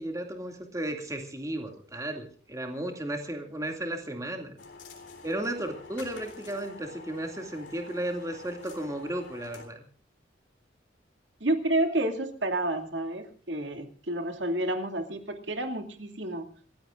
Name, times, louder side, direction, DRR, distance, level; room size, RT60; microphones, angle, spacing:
voice 1, 0.0-4.6 5.2-9.8, right 1 dB, 15° right, 4 dB, 2.4 m, -34 dB
sound 1, 4.6-9.7, left 4 dB, 85° left, 3.8 m, -47 dB
voice 2, 11.4-16.5, right 1 dB, 70° right, 5 dB, 2.5 m, -30 dB
28.0 x 15.5 x 2.5 m, 0.44 s
head